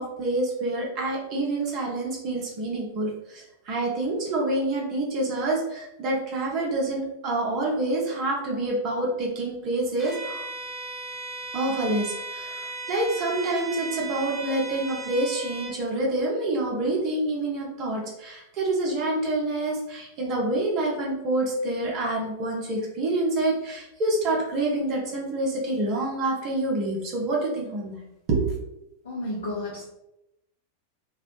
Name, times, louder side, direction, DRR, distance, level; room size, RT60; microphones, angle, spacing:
voice 1, 0.0-10.4 11.5-28.0 28.3-28.5, right 2 dB, 35° right, -1 dB, 0.7 m, -27 dB
Bowed string instrument, 10.0-15.8, right 2 dB, 5° right, 0.7 m, -36 dB
voice 2, 29.0-29.8, left 1 dB, 65° left, -5 dB, 0.5 m, -31 dB
2.3 x 2.0 x 2.9 m, 0.88 s
figure-of-eight pair, 90°, 0 cm